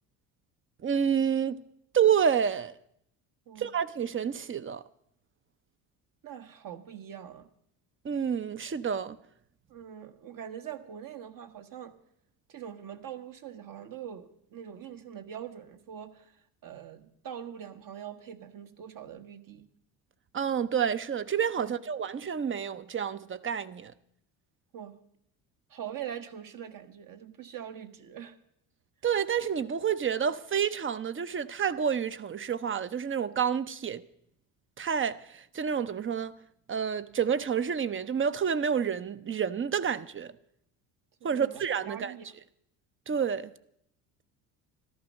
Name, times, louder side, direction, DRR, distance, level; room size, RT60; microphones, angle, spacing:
voice 1, 0.8-1.6 1.9-2.7 3.6-4.8 8.0-9.2 20.3-23.9 29.0-34.0 34.8-36.3 36.7-40.3 41.2-42.1 43.1-43.5, right 7 dB, 30° right, 0.8 m, -29 dB
voice 2, 6.2-7.5 9.7-11.9 12.5-19.7 21.6-21.8 24.7-24.9 25.7-28.4 41.2-42.3, right 9 dB, 50° right, 1.5 m, -43 dB
14.0 x 12.0 x 6.4 m
supercardioid pair, 80°, 43 cm